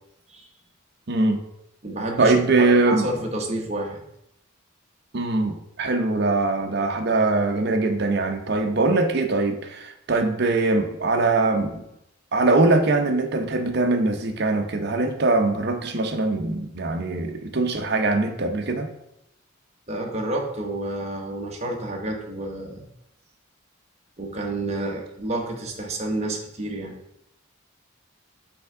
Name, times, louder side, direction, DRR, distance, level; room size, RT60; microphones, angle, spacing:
voice 1, 1.1-1.4 2.2-3.1 5.1-11.8 12.3-18.9, right 3 dB, 55° right, 5 dB, 0.7 m, -22 dB
voice 2, 1.8-4.0 19.9-22.9 24.2-26.9, right 2 dB, 30° right, 1 dB, 1.0 m, -30 dB
6.0 x 3.5 x 4.7 m, 0.81 s
head